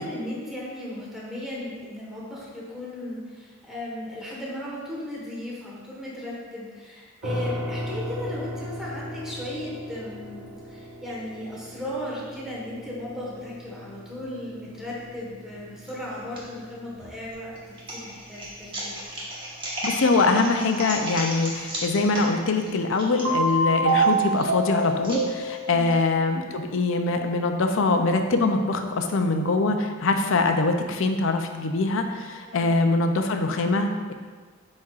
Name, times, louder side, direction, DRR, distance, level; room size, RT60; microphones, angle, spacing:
voice 1, 0.0-19.0 25.7-26.0 32.5-32.8, left 1 dB, ahead, -7 dB, 1.4 m, -36 dB
sound 1, 7.2-20.1, equal, 90° right, 1.0 m, -38 dB
sound 2, 15.9-16.4 17.0-25.9, right 1 dB, 25° right, 1.3 m, -35 dB
voice 2, 19.8-34.1, left 3 dB, 65° left, 5 dB, 0.5 m, -23 dB
sound 3, 23.2-26.1, right 2 dB, 60° right, 1.3 m, -25 dB
9.3 x 4.2 x 2.5 m, 1.5 s
head